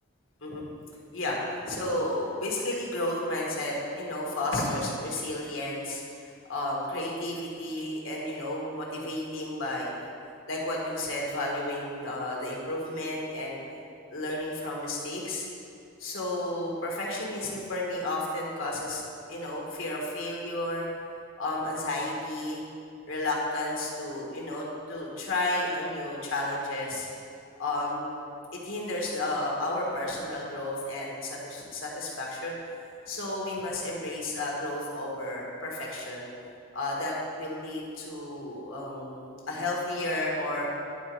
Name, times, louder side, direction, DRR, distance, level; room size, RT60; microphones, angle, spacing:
voice 1, 1.7-9.9 10.5-13.6 14.1-15.5 16.0-19.0 19.3-20.9 21.4-22.6 23.1-27.1 27.6-28.2 28.5-32.5 33.1-36.3 36.7-40.7, left 1 dB, 75° left, -3 dB, 1.6 m, -32 dB
11.0 x 4.0 x 4.7 m, 2.4 s
head